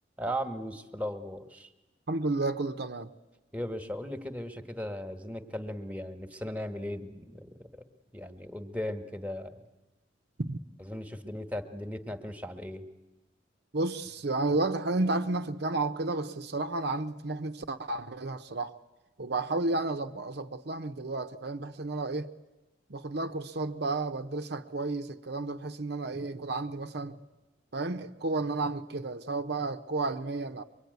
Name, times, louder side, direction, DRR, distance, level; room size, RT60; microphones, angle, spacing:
voice 1, 0.2-1.7 3.5-7.7 8.1-9.6 10.8-12.9, equal, 10° right, 1.4 m, -37 dB
voice 2, 2.1-3.1 10.4-10.6 13.7-18.7 19.2-22.3 22.9-27.2 27.7-30.6, right 2 dB, 60° right, 0.9 m, -32 dB
23.5 x 22.5 x 9.4 m
head